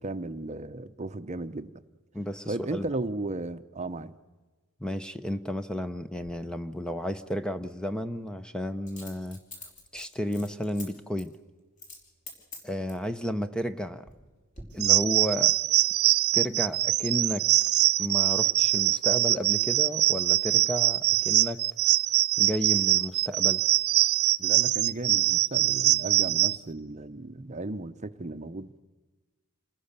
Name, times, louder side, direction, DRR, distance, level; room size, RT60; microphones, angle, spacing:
voice 1, 0.0-1.7 2.5-4.2 24.4-28.8, right 2 dB, 30° right, 11 dB, 0.7 m, -35 dB
voice 2, 2.1-2.9 4.8-9.4 9.9-11.3 12.6-14.1 14.7-15.5 16.3-17.5 18.0-21.6 22.4-23.6, equal, 5° left, 10 dB, 0.7 m, -32 dB
Coin (dropping), 6.2-6.4 8.9-10.9 11.2-11.4 11.8-12.0 12.3-13.1 13.7-14.2 14.5-14.6, left 3 dB, 35° left, 4.8 m, -45 dB
sound 1, 14.8-26.6, right 15 dB, 75° right, 0.6 m, -23 dB
27.5 x 19.5 x 6.7 m, 1.3 s
head